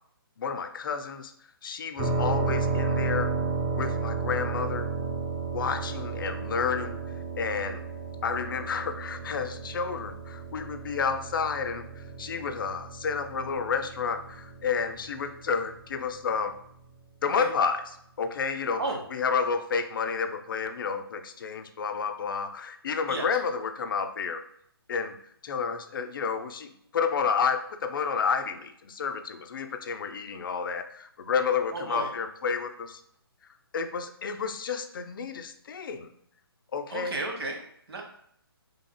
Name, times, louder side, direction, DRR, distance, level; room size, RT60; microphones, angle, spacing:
voice 1, 0.4-1.3 1.6-3.3 3.7-4.9 5.5-7.0 7.4-7.8 8.2-16.5 17.2-17.8 18.2-18.8 19.1-24.4 24.9-25.2 25.4-33.0 33.7-36.1 36.7-37.2, left 6 dB, 55° left, 8 dB, 0.4 m, -30 dB
sound 1, 2.0-15.7, right 4 dB, 25° right, 1.0 m, -33 dB
voice 2, 31.7-32.1 36.9-38.0, right 2 dB, 70° right, 2 dB, 0.9 m, -33 dB
3.6 x 3.3 x 2.2 m, 0.68 s
figure-of-eight pair, 145°, 13 cm